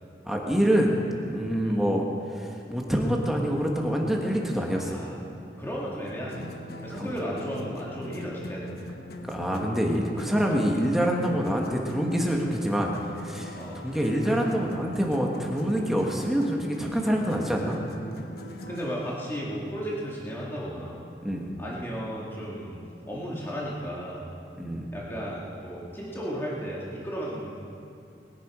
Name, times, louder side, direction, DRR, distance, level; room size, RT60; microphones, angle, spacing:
voice 1, 0.3-0.9 1.2-2.0 2.3-5.0 7.0-7.1 9.2-12.9 13.2-17.8 21.2-21.5 24.6-24.9, equal, ahead, -1 dB, 1.4 m, -26 dB
voice 2, 4.7-5.2 5.6-6.5 6.8-8.7 13.6-13.8 18.7-21.0 21.6-22.8 23.1-24.3 24.9-27.6, equal, 15° left, -5 dB, 2.0 m, -34 dB
sound 1, 6.0-19.2, equal, 60° left, 1.1 m, -41 dB
20.5 x 10.5 x 4.9 m, 2.7 s
head